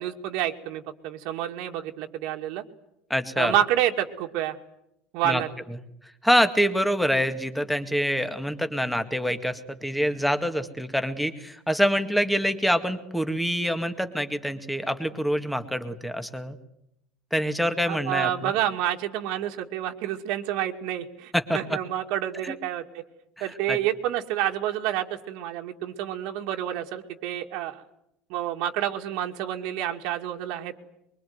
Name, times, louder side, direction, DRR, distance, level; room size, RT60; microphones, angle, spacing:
voice 1, 0.0-2.6 3.4-4.6 5.1-5.5 17.9-23.0 23.4-27.8 28.3-30.8, right 12 dB, 65° right, 3 dB, 2.2 m, -29 dB
voice 2, 3.1-3.6 5.2-5.4 6.2-16.6 17.3-18.5 21.3-21.8 22.4-22.6 23.4-23.8, equal, ahead, 8 dB, 1.9 m, -26 dB
24.0 x 23.5 x 9.5 m, 0.80 s
cardioid pair, 155°, 0 cm